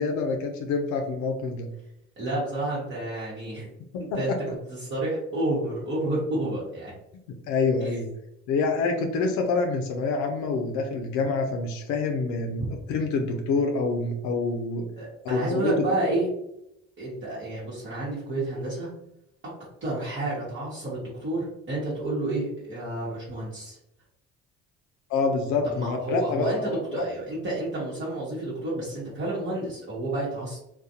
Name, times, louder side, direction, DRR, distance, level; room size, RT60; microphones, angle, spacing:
voice 1, 0.0-1.7 3.9-4.2 7.3-8.1 8.5-12.6 12.9-14.9 15.2-15.7 25.1-27.0, left 4 dB, 80° left, 3 dB, 0.5 m, -27 dB
voice 2, 2.2-3.7 4.0-4.3 4.7-6.9 7.8-8.0 12.6-12.7 15.0-16.3 17.0-18.9 19.8-23.8 25.6-30.6, right 2 dB, 45° right, -7 dB, 1.0 m, -30 dB
2.4 x 2.2 x 2.7 m, 0.82 s
cardioid pair, 95°, 29 cm